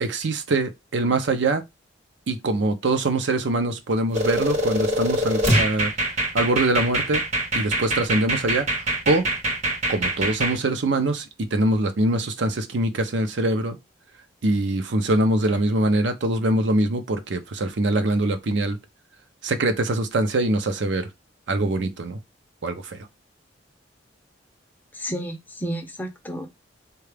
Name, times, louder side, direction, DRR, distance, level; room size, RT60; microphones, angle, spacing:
voice 1, 0.0-1.6 2.3-5.9 6.3-7.2 7.5-8.7 9.1-9.2 9.9-13.8 14.4-18.8 19.4-21.1 21.5-22.2 22.6-23.1, right 2 dB, 65° right, 0.6 m, -23 dB
sound 1, 4.1-10.6, right 1 dB, 35° right, 0.8 m, -24 dB
voice 2, 24.9-26.5, equal, 10° left, 0.5 m, -31 dB
3.7 x 2.3 x 3.3 m
head